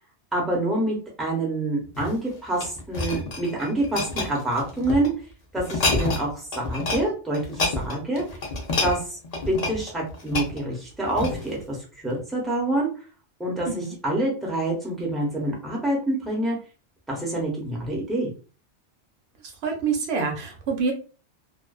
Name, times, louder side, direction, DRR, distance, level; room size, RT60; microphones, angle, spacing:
voice 1, 0.3-5.1 5.5-8.2 8.8-9.2 9.5-11.8 12.0-12.9 13.4-16.6 17.1-18.3, right 1 dB, ahead, -3 dB, 0.7 m, -26 dB
sound 1, 1.9-5.1 5.6-6.3 6.5-7.0 7.3-11.6 12.2-12.3, left 2 dB, 45° left, 0.5 m, -28 dB
voice 2, 13.6-14.0 19.6-20.9, right 5 dB, 65° right, 2 dB, 0.9 m, -26 dB
2.5 x 2.2 x 2.2 m, 0.35 s
omnidirectional pair, 1.2 m